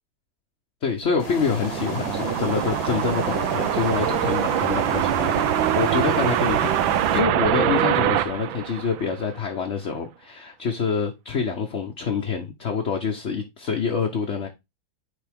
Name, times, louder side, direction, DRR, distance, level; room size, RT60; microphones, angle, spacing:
voice 1, 0.8-14.5, left 5 dB, 45° left, 1.0 m, -26 dB
sound 1, 1.0-9.4, right 12 dB, 85° right, 1.4 m, -24 dB
sound 2, 1.2-7.2, left 4 dB, 90° left, 2.6 m, -35 dB
9.5 x 3.6 x 3.5 m
omnidirectional pair, 2.1 m